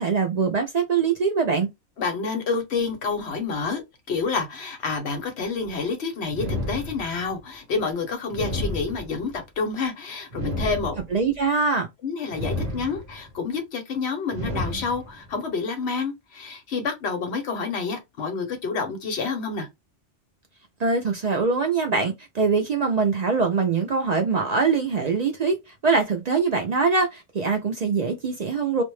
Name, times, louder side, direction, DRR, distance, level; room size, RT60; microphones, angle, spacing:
voice 1, 0.0-1.7 11.1-11.9 20.8-28.8, right 4 dB, 60° right, 0.4 m, -23 dB
voice 2, 2.0-3.8 4.1-11.0 12.0-19.7, left 4 dB, 65° left, 1.1 m, -28 dB
sound 1, 6.3-7.4 8.3-9.4 10.3-11.4 12.3-13.3 14.3-15.3, left 1 dB, 35° right, 0.9 m, -31 dB
2.5 x 2.2 x 3.1 m
omnidirectional pair, 1.2 m